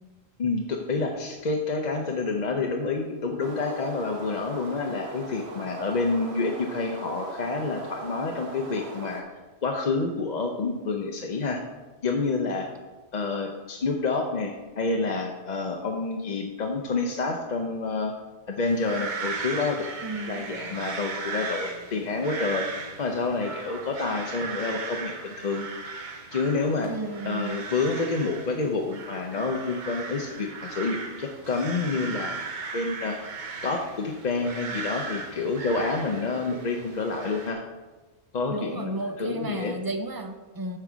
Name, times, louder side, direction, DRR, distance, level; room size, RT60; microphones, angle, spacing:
voice 1, 0.4-9.3 9.6-11.6 12.0-12.7 13.1-18.1 18.5-19.9 20.3-22.7 23.0-25.7 26.3-26.9 27.2-32.4 32.7-33.3 33.6-37.6 38.3-38.9 39.2-39.7, left 3 dB, 45° left, 2 dB, 0.7 m, -28 dB
sound 1, 3.4-9.2, right 2 dB, 65° right, 1.5 m, -40 dB
sound 2, 18.7-37.5, right 4 dB, 45° right, 0.9 m, -37 dB
voice 2, 20.0-20.5 26.9-27.7 38.5-40.8, right 2 dB, 25° right, 6 dB, 0.5 m, -33 dB
8.6 x 4.5 x 6.1 m, 1.2 s
omnidirectional pair, 1.1 m